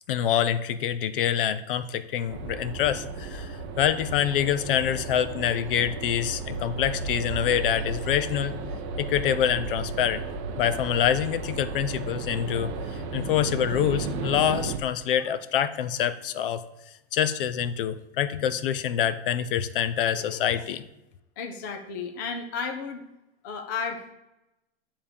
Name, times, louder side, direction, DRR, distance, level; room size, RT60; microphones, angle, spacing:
voice 1, 0.1-8.6 9.0-10.2 10.6-12.7 13.1-16.6 17.1-20.8, left 10 dB, 55° left, 13 dB, 0.6 m, -26 dB
sound 1, 2.3-14.8, right 3 dB, 30° right, 0.6 m, -34 dB
voice 2, 21.4-23.0 23.4-24.1, left 5 dB, 20° left, 4 dB, 0.3 m, -33 dB
9.5 x 3.6 x 6.7 m, 0.95 s
supercardioid pair, 175°, 32 cm